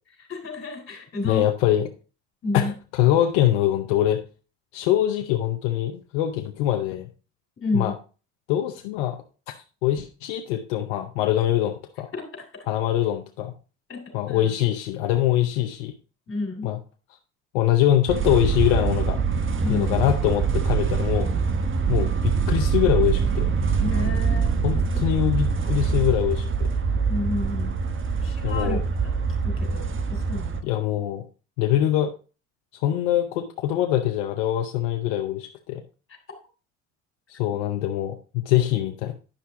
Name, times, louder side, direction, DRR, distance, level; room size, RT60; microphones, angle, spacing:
voice 1, 0.2-1.5 2.4-2.7 7.6-8.0 12.1-12.7 13.9-14.0 14.3-14.5 16.3-16.7 19.6-20.0 23.8-24.5 24.9-25.1 27.1-27.8 28.2-29.1 29.4-30.8, left 2 dB, 35° left, 3 dB, 3.8 m, -31 dB
voice 2, 1.2-1.9 2.5-2.7 3.0-4.2 4.7-7.1 7.7-7.9 8.5-9.2 9.8-12.1 12.7-13.5 14.1-15.9 16.6-16.8 17.5-19.2 19.7-21.3 21.9-23.5 24.6-26.7 28.4-28.8 30.6-31.2 31.6-32.1 32.8-35.8 37.3-39.1, left 12 dB, 85° left, 6 dB, 0.8 m, -23 dB
sound 1, 18.1-30.6, right 5 dB, 35° right, 1.1 m, -24 dB
10.0 x 5.7 x 3.7 m, 0.35 s
supercardioid pair, 80°, 36 cm